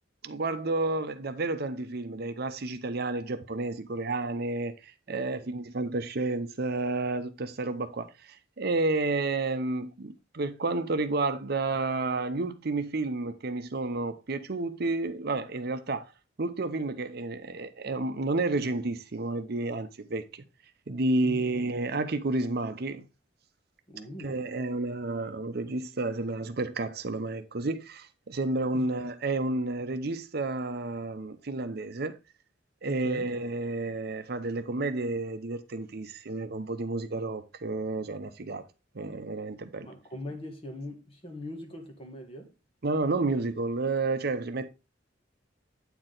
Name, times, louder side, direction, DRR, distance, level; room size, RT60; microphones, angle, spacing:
voice 1, 0.2-16.1 16.4-20.4 20.9-23.1 24.2-32.1 32.8-38.6 38.9-39.9 42.8-44.7, right 2 dB, 55° right, 0.7 m, -31 dB
voice 2, 5.1-5.5 21.2-21.5 23.9-24.4 28.7-28.9 32.8-33.4 39.8-42.5, left 1 dB, 30° left, 1.9 m, -41 dB
8.8 x 4.7 x 3.8 m
head